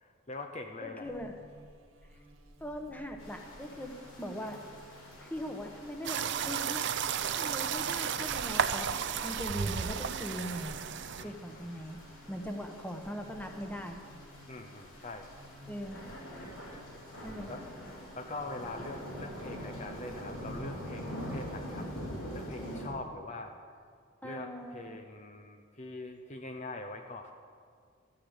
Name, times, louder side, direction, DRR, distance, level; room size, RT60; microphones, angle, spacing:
voice 1, 0.0-1.1 11.2-11.7 14.5-15.3 16.6-16.8 17.5-21.9 22.3-23.5 24.2-27.3, left 2 dB, 35° left, 5 dB, 0.8 m, -43 dB
voice 2, 0.8-1.4 2.6-3.9 4.2-4.6 5.2-6.9 7.2-8.9 9.2-10.8 11.2-12.0 12.3-14.0 15.7-16.0 17.2-17.5 24.2-25.0, equal, 10° left, 4 dB, 1.1 m, -40 dB
Buzz, 1.0-20.8, equal, 85° right, 2.3 m, -54 dB
sound 1, 3.2-22.9, equal, 80° left, 4.9 m, -46 dB
sound 2, 6.0-11.2, right 7 dB, 60° right, 0.6 m, -33 dB
13.5 x 9.8 x 8.2 m, 2.1 s
head